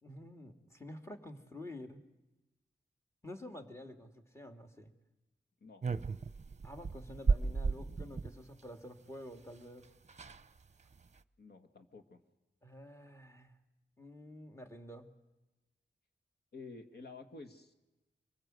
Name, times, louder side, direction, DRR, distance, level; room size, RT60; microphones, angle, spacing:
voice 1, 0.0-2.0 3.2-4.9 6.6-9.9 12.6-13.6 14.0-15.1, left 1 dB, 15° left, 4 dB, 2.7 m, -49 dB
sound 1, 5.8-8.3 9.6-9.7 9.8-9.9 10.1-10.5 10.9-11.2, right 4 dB, 40° right, 0.8 m, -34 dB
voice 2, 11.4-12.2 16.5-17.7, left 3 dB, 60° left, 6 dB, 2.0 m, -51 dB
26.0 x 21.5 x 7.9 m, 1.1 s
wide cardioid pair, 70°, 19 cm